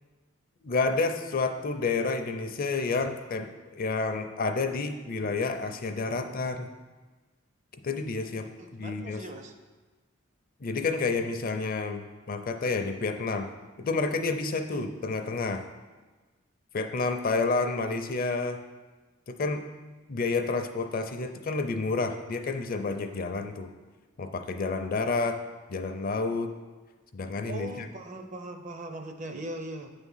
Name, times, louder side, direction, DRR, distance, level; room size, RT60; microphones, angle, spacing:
voice 1, 0.6-6.7 7.8-9.2 10.6-13.5 13.8-15.6 16.7-18.6 19.3-19.7 20.1-23.7 24.2-25.4 25.7-26.5 27.1-27.9, left 3 dB, 45° left, 7 dB, 0.5 m, -30 dB
voice 2, 8.6-9.5 14.7-14.9 27.5-29.9, right 1 dB, 35° right, 6 dB, 0.5 m, -39 dB
8.6 x 3.6 x 5.5 m, 1.3 s
head